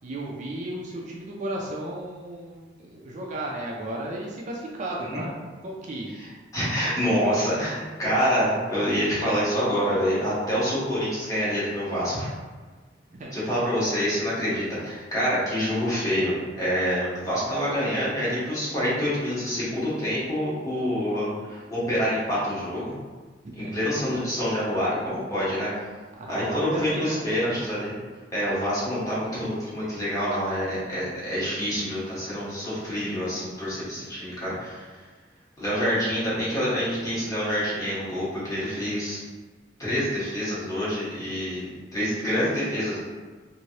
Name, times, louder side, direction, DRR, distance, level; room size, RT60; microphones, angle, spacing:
voice 1, 0.0-6.1 6.8-6.9 13.1-13.3 23.4-23.9 26.2-27.2 27.5-27.6 35.8-35.9, right 1 dB, 40° right, -2 dB, 0.4 m, -34 dB
voice 2, 6.5-12.3 13.3-22.9 23.5-25.7 26.3-27.9 28.3-35.0 35.6-39.2 39.8-43.0, equal, 20° left, -10 dB, 1.2 m, -27 dB
3.1 x 2.6 x 2.7 m, 1.4 s
head